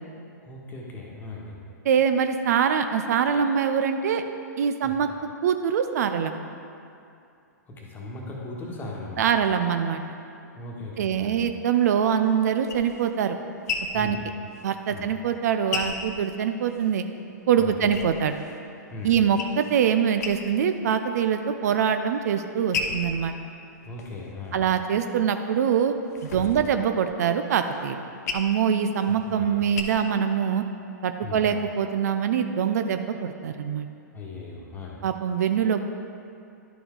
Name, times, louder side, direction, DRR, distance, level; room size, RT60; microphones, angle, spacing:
voice 1, 0.4-1.6 4.8-5.0 7.7-9.4 10.5-11.5 13.9-14.2 14.9-15.1 17.6-17.8 18.9-19.2 23.8-24.7 26.4-26.6 29.1-29.6 31.2-31.4 34.1-35.0, left 2 dB, 20° left, -3 dB, 1.4 m, -38 dB
voice 2, 1.8-4.2 4.6-5.1 5.4-6.3 9.2-10.0 11.0-13.4 13.9-14.2 14.6-17.0 17.5-18.4 19.0-23.3 24.5-25.9 26.3-28.0 28.3-30.6 31.0-33.9 35.0-35.8, right 8 dB, 60° right, 8 dB, 0.4 m, -24 dB
sound 1, 12.3-17.0 17.3-18.6 19.0-19.8 20.1-20.8 21.2-21.8 22.3-25.0 25.5-29.8, left 4 dB, 65° left, 0.8 m, -35 dB
11.0 x 4.6 x 3.7 m, 2.5 s
hypercardioid pair, 115°, 10 cm